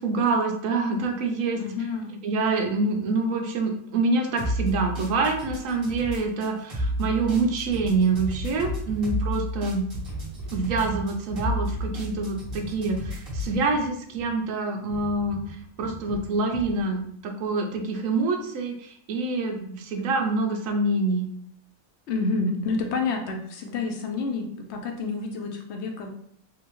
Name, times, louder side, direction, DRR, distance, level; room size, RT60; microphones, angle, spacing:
voice 1, 0.0-1.6 2.2-9.8 10.5-21.3, right 3 dB, 70° right, 3 dB, 1.0 m, -26 dB
voice 2, 1.6-2.1 22.1-26.1, left 4 dB, 65° left, 3 dB, 0.8 m, -29 dB
sound 1, 4.4-13.6, equal, 40° right, 1.3 m, -32 dB
sound 2, 7.7-9.6 9.9-14.4 14.9-16.8, right 4 dB, 15° right, 1.0 m, -40 dB
3.7 x 2.4 x 3.0 m, 0.65 s
omnidirectional pair, 1.5 m